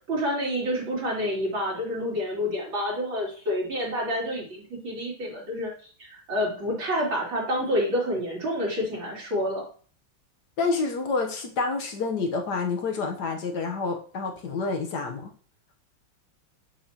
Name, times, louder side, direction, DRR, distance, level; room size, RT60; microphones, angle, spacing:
voice 1, 0.1-5.7 6.0-9.6, equal, 70° right, -3 dB, 3.7 m, -28 dB
voice 2, 10.6-15.3, left 4 dB, 60° left, 3 dB, 1.4 m, -28 dB
7.5 x 6.9 x 2.9 m, 0.43 s
omnidirectional pair, 2.2 m